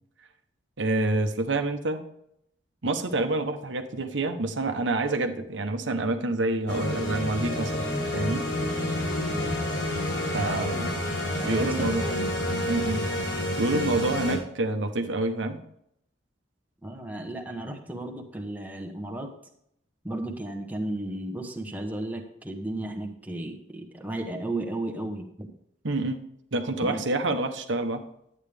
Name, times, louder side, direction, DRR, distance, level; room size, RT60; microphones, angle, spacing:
voice 1, 0.8-2.0 2.8-8.5 10.3-10.8 11.4-12.1 12.7-13.1 13.6-15.6 25.8-26.2 26.5-28.0, right 2 dB, 85° right, 6 dB, 1.0 m, -27 dB
sound 1, 6.7-14.4, left 1 dB, 80° left, 3.9 m, -29 dB
voice 2, 10.3-10.8 11.4-12.3 16.8-19.3 20.0-25.5 26.8-27.0, right 1 dB, 10° right, 2 dB, 1.1 m, -34 dB
11.0 x 8.7 x 3.4 m, 0.73 s
head